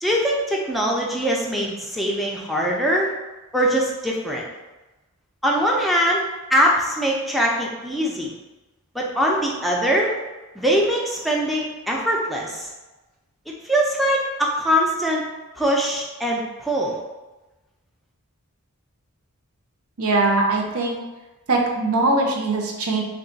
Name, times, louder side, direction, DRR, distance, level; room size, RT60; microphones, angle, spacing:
voice 1, 0.0-3.1 3.5-4.5 5.4-8.3 8.9-10.1 10.6-12.7 13.6-15.2 15.6-17.0, equal, ahead, -3 dB, 0.5 m, -22 dB
voice 2, 20.0-21.0 21.5-23.0, right 2 dB, 70° right, 0 dB, 0.6 m, -21 dB
3.3 x 2.3 x 3.9 m, 1.1 s
head